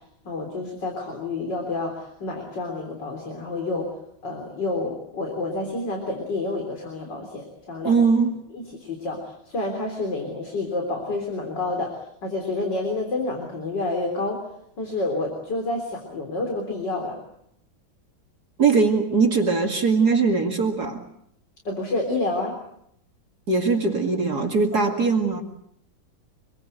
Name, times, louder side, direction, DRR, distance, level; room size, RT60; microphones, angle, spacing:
voice 1, 0.3-3.9 4.2-8.0 8.5-11.9 12.2-14.4 14.8-17.2 21.7-22.5 24.8-24.9, left 2 dB, 60° left, 4.2 m, -29 dB
voice 2, 7.8-8.4 18.6-21.0 23.5-25.4, right 4 dB, 50° right, 2.7 m, -21 dB
26.0 x 22.0 x 7.9 m
omnidirectional pair, 2.2 m